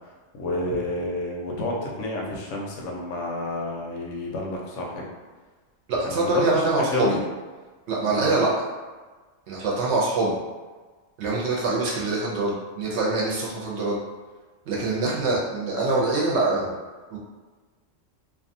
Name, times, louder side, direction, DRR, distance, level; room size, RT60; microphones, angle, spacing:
voice 1, 0.3-5.1 6.0-7.2 8.1-8.4, left 2 dB, 80° left, -2 dB, 0.9 m, -29 dB
voice 2, 5.9-7.2 7.9-8.6 9.5-10.4 11.2-14.0 14.7-16.8 17.1-17.2, right 3 dB, 70° right, -4 dB, 0.8 m, -24 dB
2.6 x 2.3 x 2.6 m, 1.3 s
omnidirectional pair, 1.3 m